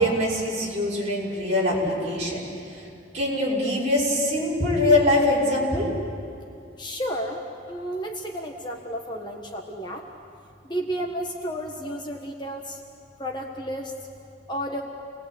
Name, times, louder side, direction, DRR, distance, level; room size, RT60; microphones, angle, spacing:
voice 1, 0.0-2.4 3.1-5.9, left 1 dB, 35° right, -6 dB, 6.1 m, -23 dB
voice 2, 6.8-7.4 7.7-10.0 10.7-12.8 13.2-13.9 14.5-14.8, equal, 25° left, 1 dB, 1.4 m, -32 dB
29.0 x 19.5 x 8.6 m, 2.4 s
head